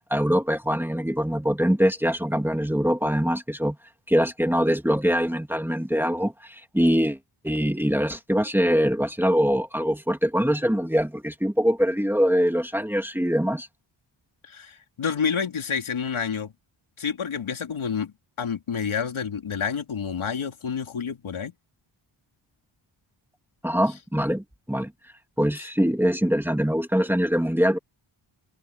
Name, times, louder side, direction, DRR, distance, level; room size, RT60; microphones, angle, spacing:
voice 1, 0.1-3.8 4.1-7.2 7.4-13.7 23.6-24.9 25.4-27.8, equal, 5° right, 2.4 m, -23 dB
voice 2, 14.4-16.5 17.0-21.5 25.6-25.7, left 6 dB, 75° left, 2.7 m, -29 dB
wide cardioid pair, 160°, 48 cm